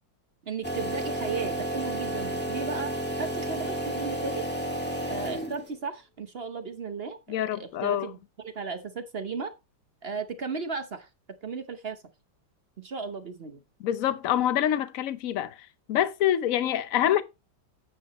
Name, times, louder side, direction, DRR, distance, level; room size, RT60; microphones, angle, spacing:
voice 1, 0.5-4.4 5.1-8.2 8.4-9.5 10.0-11.1 11.4-12.0 12.8-13.6, right 5 dB, 55° right, 0.7 m, -35 dB
sound 1, 0.6-5.8, right 1 dB, 5° left, 1.8 m, -31 dB
voice 2, 7.3-8.1 13.8-15.6 15.9-17.2, left 11 dB, 60° left, 0.9 m, -26 dB
9.5 x 8.7 x 3.0 m
omnidirectional pair, 2.2 m